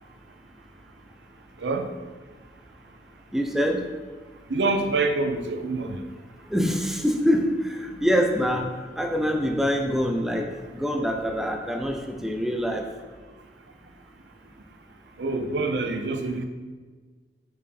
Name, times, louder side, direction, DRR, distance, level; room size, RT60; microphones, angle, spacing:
voice 1, 3.3-3.8 6.5-7.4 7.8-8.7 9.0-10.5 10.7-12.8, equal, ahead, 2 dB, 0.5 m, -24 dB
voice 2, 4.5-6.0 15.2-16.4, right 3 dB, 70° right, 6 dB, 0.6 m, -26 dB
6.0 x 4.3 x 4.3 m, 1.4 s
head